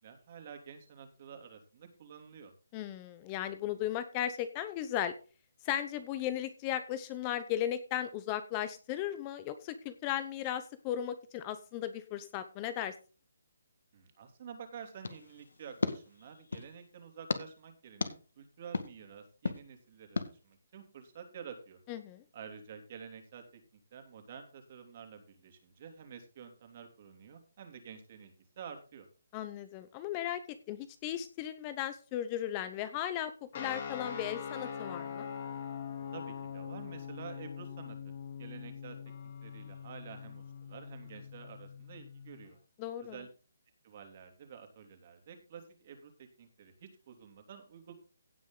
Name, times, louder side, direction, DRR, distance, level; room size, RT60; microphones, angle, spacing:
voice 1, 0.0-2.5 13.9-21.8 22.3-23.6 23.9-29.1 36.1-38.1 38.4-39.0 39.2-42.6 43.0-43.3 43.8-47.9, right 7 dB, 35° right, 5 dB, 3.0 m, -50 dB
voice 2, 2.7-5.1 5.6-12.9 21.9-22.2 29.3-30.4 30.7-35.3 42.8-43.2, left 11 dB, 20° left, 12 dB, 0.8 m, -36 dB
sound 1, 15.0-16.7 17.3-17.4 18.0-18.1 18.7-18.9 19.4-19.6 20.2-20.3, left 4 dB, 80° left, 1.9 m, -35 dB
sound 2, 33.5-42.5, left 7 dB, 35° left, 3.0 m, -43 dB
17.0 x 6.2 x 3.9 m, 0.35 s
hypercardioid pair, 165°, 0 cm